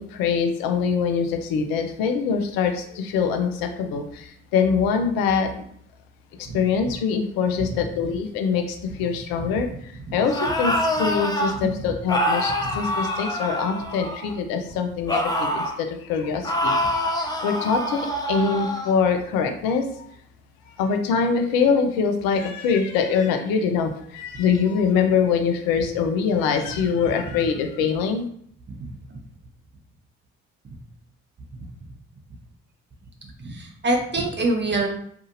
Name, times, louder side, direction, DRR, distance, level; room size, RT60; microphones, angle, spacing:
voice 1, 0.0-5.5 6.4-9.7 10.1-10.7 11.0-16.8 17.1-20.0 20.8-28.2, left 6 dB, 70° left, 5 dB, 0.5 m, -23 dB
sound 1, 10.2-11.5 12.1-14.4 15.1-15.8 16.4-18.9, equal, 10° left, 0.5 m, -25 dB
voice 2, 33.4-34.9, right 2 dB, 30° right, 1 dB, 0.8 m, -24 dB
2.7 x 2.5 x 2.6 m, 0.64 s
hypercardioid pair, 45°, 36 cm